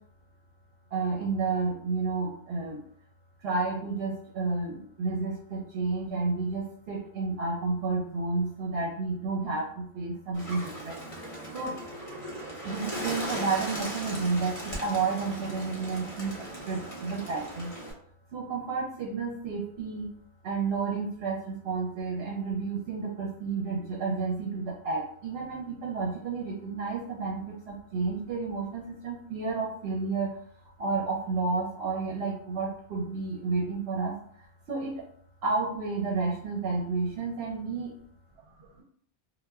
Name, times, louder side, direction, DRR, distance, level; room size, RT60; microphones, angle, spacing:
voice 1, 0.9-2.8 3.4-11.0 11.5-11.7 12.7-16.3 16.7-17.7 18.3-20.1 20.4-30.3 30.8-34.1 34.7-34.9 35.4-37.9, right 4 dB, 75° right, -2 dB, 0.8 m, -31 dB
Bird, 10.3-17.9, right 1 dB, 40° left, 0.8 m, -38 dB
2.1 x 2.1 x 3.4 m, 0.62 s
omnidirectional pair, 1.1 m